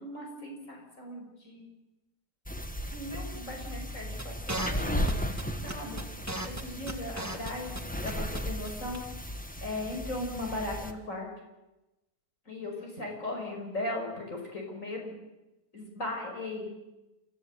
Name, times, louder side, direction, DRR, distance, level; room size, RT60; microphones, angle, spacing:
voice 1, 0.0-1.6 2.9-6.0 6.4-7.7 8.0-9.0 9.6-11.3 12.5-15.1 15.7-16.7, left 1 dB, 55° left, 1 dB, 6.0 m, -38 dB
sound 1, 2.5-10.9, equal, 5° left, 1.3 m, -36 dB
sound 2, 4.2-7.8 8.0-8.4 8.6-8.7 8.9-9.0, right 1 dB, 10° right, 1.4 m, -35 dB
29.0 x 15.0 x 8.1 m, 1.0 s
omnidirectional pair, 1.7 m